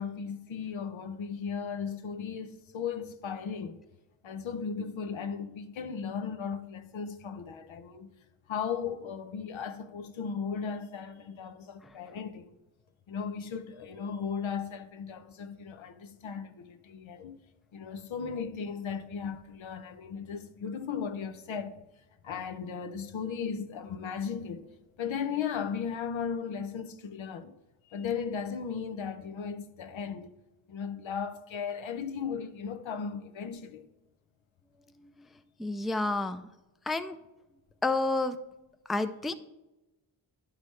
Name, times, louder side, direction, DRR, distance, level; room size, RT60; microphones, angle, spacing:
voice 1, 0.0-3.8 4.2-8.1 8.5-12.6 13.1-17.4 17.7-21.8 22.2-24.7 25.0-27.6 27.9-30.3 30.7-33.9, left 6 dB, 85° left, 0.7 m, -36 dB
voice 2, 35.6-36.5 36.9-37.2 37.8-38.4 38.9-39.3, left 2 dB, ahead, 0.3 m, -29 dB
10.0 x 4.9 x 3.2 m
cardioid pair, 60°, 46 cm